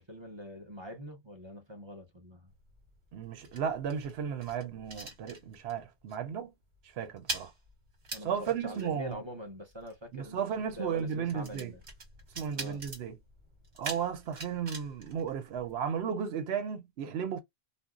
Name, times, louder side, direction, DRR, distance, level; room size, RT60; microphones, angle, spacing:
voice 1, 0.0-2.5 8.1-10.5 10.8-11.8 12.5-12.8, equal, 30° right, 0.8 m, -44 dB
sound 1, 2.5-5.8 6.1-6.4 6.6-16.0, right 3 dB, 60° right, 1.3 m, -44 dB
voice 2, 3.1-6.5 6.9-7.5 8.2-9.2 10.1-11.7 12.4-13.2 13.8-17.4, right 7 dB, 85° right, 0.9 m, -34 dB
2.6 x 2.0 x 3.5 m
omnidirectional pair, 1.1 m